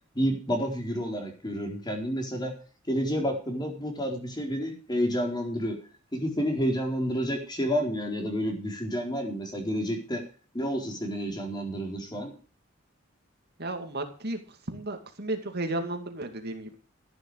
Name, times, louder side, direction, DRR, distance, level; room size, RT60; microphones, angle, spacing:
voice 1, 0.2-2.5 2.9-5.8 6.1-10.2 10.5-12.3, equal, 20° left, 2 dB, 4.1 m, -30 dB
voice 2, 13.6-14.4 14.7-16.8, right 2 dB, 50° right, 5 dB, 2.4 m, -33 dB
14.0 x 11.0 x 4.8 m, 0.37 s
head